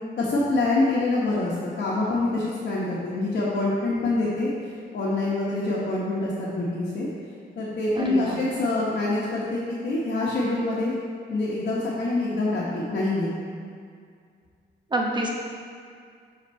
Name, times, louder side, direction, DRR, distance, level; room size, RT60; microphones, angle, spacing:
voice 1, 0.2-7.1 7.6-10.9 11.3-13.3, left 2 dB, 65° left, -7 dB, 1.2 m, -25 dB
voice 2, 8.0-8.4 14.9-15.3, right 1 dB, 25° right, -1 dB, 1.0 m, -26 dB
7.2 x 4.0 x 4.3 m, 2.2 s
cardioid pair, 120°, 18 cm